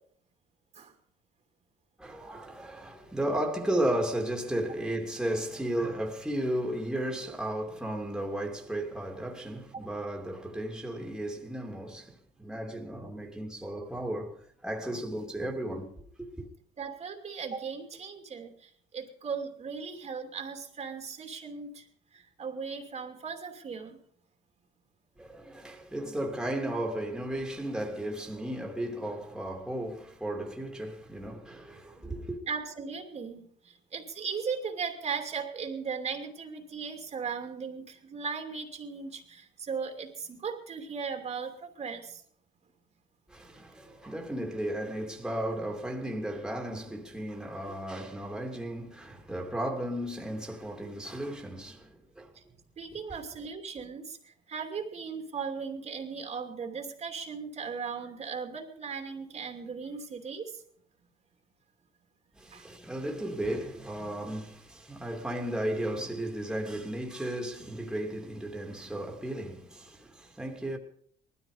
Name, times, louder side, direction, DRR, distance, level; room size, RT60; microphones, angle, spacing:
voice 1, 2.0-16.0 16.4-16.5 25.2-32.4 43.3-52.3 62.4-70.8, right 1 dB, 5° right, 2.9 m, -34 dB
voice 2, 16.8-21.9 22.1-24.0 32.0-42.2 52.3-52.4 52.8-60.6 62.5-62.6, right 5 dB, 40° right, 2.8 m, -37 dB
19.5 x 13.5 x 5.1 m
cardioid pair, 110°, 17 cm